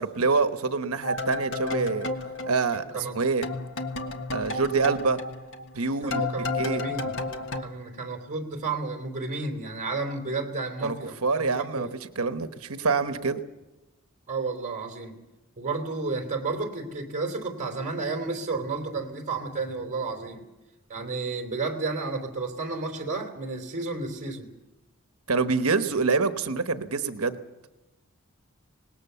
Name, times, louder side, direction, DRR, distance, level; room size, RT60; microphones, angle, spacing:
voice 1, 0.0-2.1 2.4-2.9 3.1-3.4 4.3-5.2 5.7-6.2 6.6-6.8 10.8-11.0 11.2-11.9 12.2-13.4 25.3-27.4, right 4 dB, 75° right, 9 dB, 1.1 m, -26 dB
sound 1, 1.0-3.2 3.4-7.6, left 2 dB, 60° left, 1.5 m, -32 dB
voice 2, 6.0-11.5 11.8-11.9 14.3-15.2 15.6-20.4 20.9-24.5, right 3 dB, 35° right, 3 dB, 3.4 m, -32 dB
25.0 x 19.5 x 6.9 m, 1.0 s
head